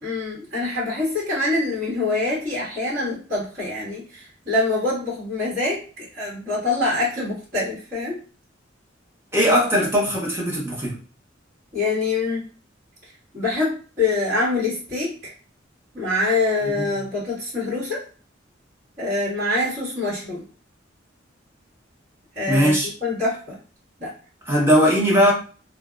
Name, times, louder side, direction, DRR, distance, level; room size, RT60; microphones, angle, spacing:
voice 1, 0.0-8.2 11.7-12.4 13.3-15.3 15.9-18.0 19.0-20.4 22.3-23.6 24.0-24.1, left 2 dB, 50° right, -13 dB, 1.5 m, -25 dB
voice 2, 9.3-10.9 16.8-16.9 22.5-22.9 24.5-25.3, equal, 15° right, -3 dB, 0.8 m, -19 dB
2.6 x 2.1 x 2.3 m, 0.38 s
head